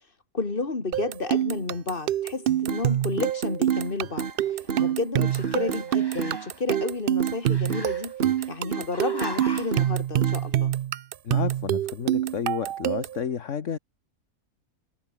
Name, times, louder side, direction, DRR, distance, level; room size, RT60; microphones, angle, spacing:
voice 1, 0.3-4.3 4.8-8.1 8.5-10.7, left 3 dB, 35° left, 2.7 m, -31 dB
sound 1, 0.9-13.2, right 12 dB, 90° right, 0.5 m, -26 dB
sound 2, 2.7-2.8 3.2-3.8 4.2-4.3 4.7-4.8 5.2-5.9 6.2-6.4 6.7-6.9 7.2-7.9 8.2-8.4 8.7-8.9 9.2-9.9 10.2-10.4, right 6 dB, 45° right, 1.5 m, -31 dB
Growling, 3.7-4.9 5.2-6.6 7.5-8.5 8.9-9.9, left 1 dB, 15° left, 4.4 m, -41 dB
voice 2, 11.2-13.8, left 7 dB, 60° left, 1.6 m, -31 dB
omnidirectional pair, 1.5 m